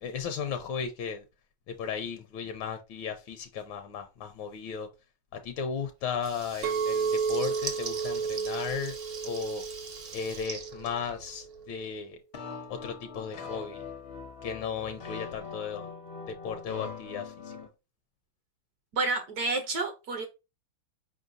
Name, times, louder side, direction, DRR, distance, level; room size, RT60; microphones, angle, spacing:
voice 1, 0.0-1.2 1.7-4.9 5.4-8.9 9.2-9.6 10.1-12.2 12.7-13.8 14.4-15.9 16.4-17.3, left 6 dB, 80° left, 1.3 m, -35 dB
Water tap faucet / Liquid, 6.1-11.6, right 5 dB, 50° right, 0.7 m, -42 dB
Chink clink, 6.6-11.0 11.4-11.8, right 5 dB, 85° right, 0.7 m, -32 dB
sound 1, 12.3-17.7, left 5 dB, 65° left, 0.6 m, -42 dB
voice 2, 18.9-20.3, right 3 dB, 65° right, 1.0 m, -29 dB
5.0 x 3.8 x 2.5 m
omnidirectional pair, 2.2 m